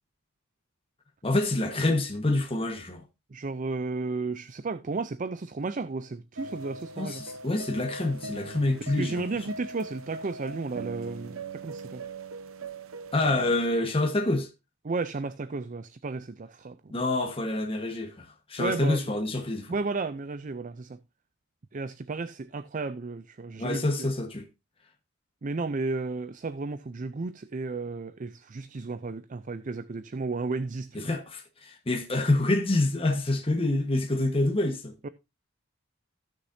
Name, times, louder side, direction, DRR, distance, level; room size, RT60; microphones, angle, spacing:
voice 1, 1.2-3.0 7.0-9.2 13.1-14.5 16.9-19.8 23.6-24.4 30.9-34.9, left 2 dB, 25° left, 1.3 m, -27 dB
voice 2, 3.3-7.2 8.9-12.0 14.9-16.9 18.6-19.0 19.7-21.0 21.7-24.1 25.4-31.1 35.0-35.1, right 3 dB, 35° right, 0.5 m, -33 dB
sound 1, 6.4-13.5, right 3 dB, 75° right, 0.8 m, -41 dB
15.5 x 6.5 x 2.7 m
head